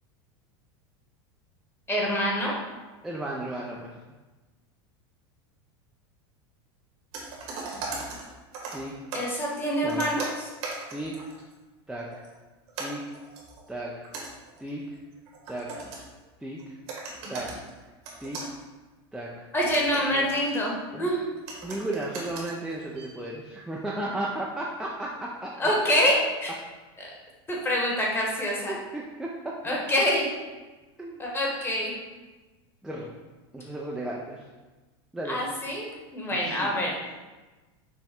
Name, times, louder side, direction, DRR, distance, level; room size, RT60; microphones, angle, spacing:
voice 1, 1.9-2.5 9.1-10.5 19.5-21.3 25.6-26.5 27.0-27.1 27.5-28.7 29.6-30.3 31.2-31.9 35.3-37.0, equal, 15° left, -3 dB, 1.2 m, -26 dB
voice 2, 3.0-4.0 8.7-8.9 9.8-10.1 10.9-11.2 11.9-12.3 12.8-13.2 13.7-14.1 14.6-15.0 15.5-15.9 16.4-16.8 17.3-17.6 18.2-18.4 19.1-19.5 20.1-20.3 20.9-21.1 21.6-25.7 28.7-29.6 31.0-31.2 32.8-33.1 33.5-34.4 35.1-35.4 36.3-36.7, right 1 dB, 5° right, -3 dB, 0.5 m, -35 dB
sound 1, 7.1-9.3 9.9-11.5 12.0-12.4 12.7-16.3 16.6-16.7 16.9-17.7 18.0-18.6 19.4-20.8 21.5-23.2, right 3 dB, 70° right, 1.5 m, -39 dB
5.6 x 2.1 x 4.4 m, 1.2 s
supercardioid pair, 120°, 14 cm